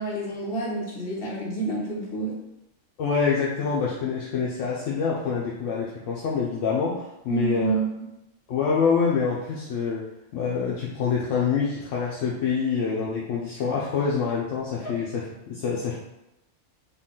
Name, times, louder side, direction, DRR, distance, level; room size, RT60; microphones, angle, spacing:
voice 1, 0.0-2.4 7.3-7.9 14.8-15.0, right 3 dB, 50° left, -5 dB, 1.2 m, -29 dB
voice 2, 3.0-7.8 8.5-10.0 10.3-16.0, left 5 dB, 75° left, -5 dB, 0.9 m, -26 dB
3.7 x 2.3 x 3.7 m, 0.89 s
omnidirectional pair, 1.3 m